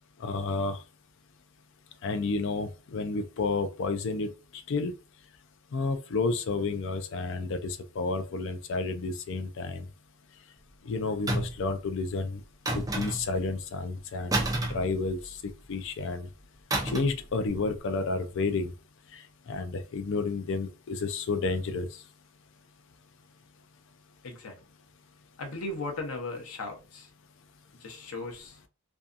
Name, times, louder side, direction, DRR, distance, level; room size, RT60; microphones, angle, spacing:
voice 1, 0.2-0.8 2.0-4.3 4.7-4.9 5.7-9.8 10.9-12.4 12.7-14.4 14.7-15.2 15.7-16.3 16.9-18.7 19.5-21.9, left 3 dB, 60° left, 0.4 m, -30 dB
sound 1, 11.3-11.7 12.7-13.4 14.3-15.5 16.7-17.2 17.5-17.7, right 2 dB, 15° right, 0.4 m, -30 dB
voice 2, 24.2-24.5 25.4-27.1 27.8-28.6, left 2 dB, 90° left, 0.7 m, -37 dB
2.6 x 2.3 x 2.4 m
head